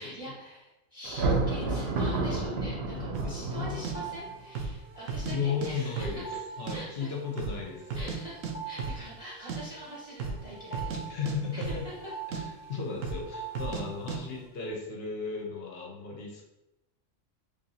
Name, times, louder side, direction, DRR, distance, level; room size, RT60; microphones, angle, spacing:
voice 1, 0.0-7.1 7.9-11.7, right 1 dB, 30° right, -7 dB, 0.8 m, -44 dB
Thunder, 1.0-4.4, right 3 dB, 60° right, 0.8 m, -30 dB
voice 2, 2.9-3.9 5.2-6.3 6.6-8.1 11.1-11.9 12.3-16.4, left 5 dB, 60° left, 0 dB, 0.8 m, -35 dB
sound 1, 3.1-3.4 3.8-3.9 4.5-4.8 5.1-5.7 6.0-6.8 7.0-7.1 7.4-8.2 8.4-8.5 8.8-9.0 9.3-9.6 10.1-10.4 10.7-12.1 12.3-12.4 13.0-13.3 13.6-13.8 14.1-14.2, right 5 dB, 85° right, 1.0 m, -34 dB
sound 2, 3.6-14.3, right 6 dB, 15° left, 0.6 m, -45 dB
3.4 x 2.5 x 4.0 m, 0.95 s
omnidirectional pair, 1.3 m